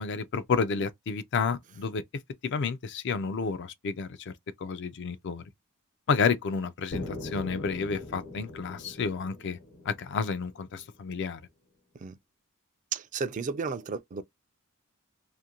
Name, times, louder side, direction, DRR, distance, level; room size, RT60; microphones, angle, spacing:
voice 1, 0.0-2.0 2.4-4.3 4.6-5.4 6.1-9.6 9.9-11.4, left 5 dB, 55° left, 0.4 m, -30 dB
sound 1, 6.9-10.8, left 2 dB, 70° left, 1.0 m, -41 dB
voice 2, 12.9-14.2, right 5 dB, 35° right, 0.3 m, -33 dB
2.6 x 2.4 x 2.8 m
head